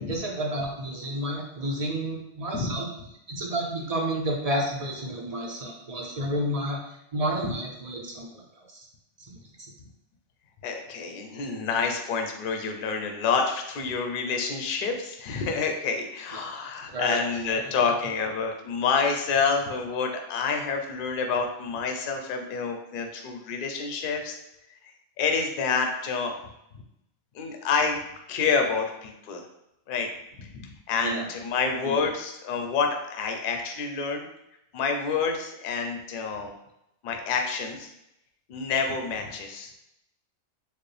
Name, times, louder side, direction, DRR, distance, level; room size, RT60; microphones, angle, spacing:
voice 1, 0.0-2.9 3.3-6.8 7.1-8.3 9.3-9.4 16.9-17.2 31.0-31.3 31.8-32.0, right 1 dB, 50° right, -1 dB, 0.4 m, -30 dB
voice 2, 10.6-24.4 24.8-26.3 27.3-28.0 28.3-29.4 29.9-30.1 30.4-34.2 34.7-36.5 37.0-37.9 38.5-39.7, left 5 dB, 55° left, 4 dB, 0.6 m, -28 dB
4.5 x 2.0 x 3.2 m, 0.83 s
omnidirectional pair, 1.2 m